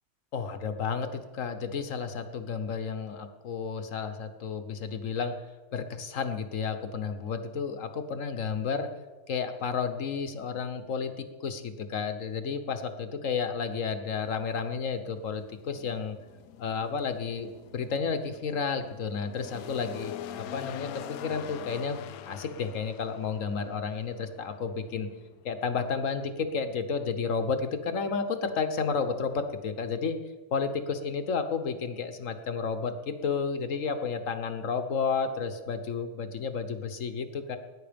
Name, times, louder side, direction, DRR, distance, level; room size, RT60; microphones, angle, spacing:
voice 1, 0.3-5.3 5.7-8.9 9.3-16.2 16.6-25.1 25.4-30.2 30.5-37.6, left 5 dB, 60° left, 9 dB, 1.4 m, -32 dB
sound 1, 14.1-28.6, left 11 dB, 75° left, 1.0 m, -46 dB
19.0 x 10.0 x 5.2 m, 1.3 s
omnidirectional pair, 1.6 m